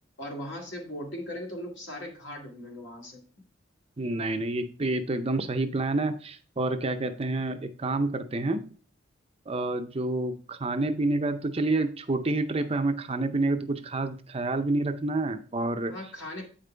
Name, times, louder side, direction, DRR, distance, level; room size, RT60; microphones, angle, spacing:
voice 1, 0.2-3.2 15.9-16.5, left 1 dB, 65° left, 0 dB, 2.3 m, -38 dB
voice 2, 4.0-8.6 9.5-15.9, right 2 dB, 30° right, 8 dB, 0.6 m, -28 dB
8.6 x 5.3 x 3.3 m, 0.39 s
head